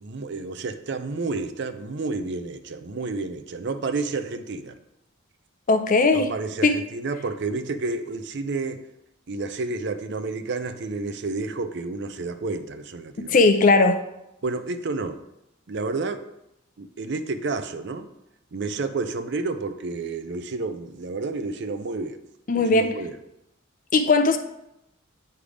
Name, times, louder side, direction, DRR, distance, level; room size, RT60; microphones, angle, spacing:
voice 1, 0.0-4.8 6.1-8.8 9.3-13.5 14.4-15.2 15.7-16.2 16.8-18.1 18.5-22.2 22.5-23.1, right 3 dB, 55° right, 10 dB, 0.5 m, -30 dB
voice 2, 5.7-6.3 6.6-6.8 13.2-14.0 22.5-23.0 23.9-24.4, left 3 dB, 40° left, 8 dB, 0.5 m, -18 dB
8.4 x 3.4 x 5.0 m, 0.85 s
head